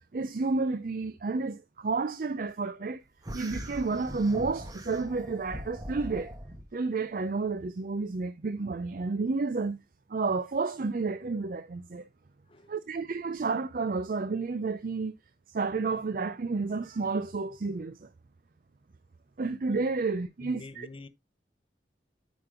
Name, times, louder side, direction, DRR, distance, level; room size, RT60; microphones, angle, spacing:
voice 1, 0.1-3.0 3.3-6.3 6.7-9.8 10.1-12.1 12.7-15.2 15.5-18.1 19.4-20.9, right 4 dB, 50° right, 0.5 m, -31 dB
sound 1, 3.2-6.7, equal, 20° right, 1.3 m, -41 dB
voice 2, 20.4-21.1, left 2 dB, 30° left, 0.7 m, -46 dB
9.2 x 5.2 x 3.7 m
head